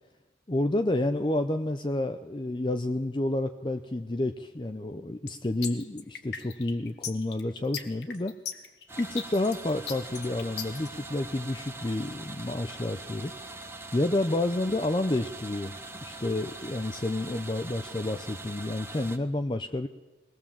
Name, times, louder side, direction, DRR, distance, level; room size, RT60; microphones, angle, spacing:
voice 1, 0.5-8.3 9.0-13.3 13.9-15.8 16.0-19.9, left 1 dB, 25° left, 6 dB, 0.6 m, -29 dB
sound 1, 5.3-10.9, left 8 dB, 70° left, 1.5 m, -37 dB
sound 2, 8.9-19.2, right 2 dB, 15° right, 1.1 m, -43 dB
22.5 x 18.5 x 7.3 m, 1.1 s
head